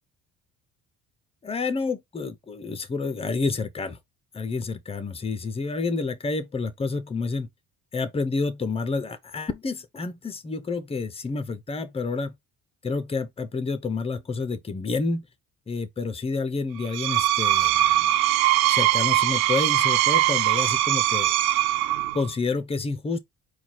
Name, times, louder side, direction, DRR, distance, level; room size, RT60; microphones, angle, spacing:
voice 1, 1.4-4.0 4.3-7.5 7.9-12.3 12.8-15.3 15.7-18.1 18.7-21.3 22.1-23.2, left 4 dB, 15° left, 0.6 m, -29 dB
Screech, 16.8-22.3, right 14 dB, 90° right, 0.7 m, -21 dB
4.5 x 2.3 x 4.1 m
cardioid pair, 130°, 34 cm